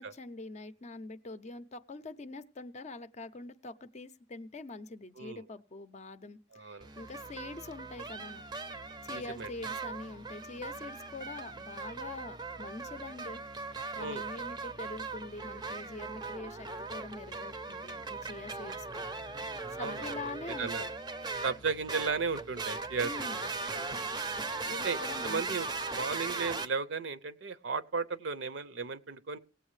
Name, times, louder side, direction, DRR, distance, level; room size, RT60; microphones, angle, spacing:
voice 1, 0.0-8.4 9.0-13.4 13.9-19.1 19.8-20.9 23.0-23.5 24.6-25.6, left 3 dB, 35° left, 0.5 m, -44 dB
voice 2, 6.5-6.9 9.1-9.5 14.0-14.2 19.7-20.2 20.6-20.8 21.4-23.1 23.7-23.9 24.7-29.4, right 5 dB, 65° right, 0.6 m, -35 dB
sound 1, 6.8-26.7, right 3 dB, 20° right, 0.5 m, -39 dB
18.5 x 8.0 x 3.2 m
head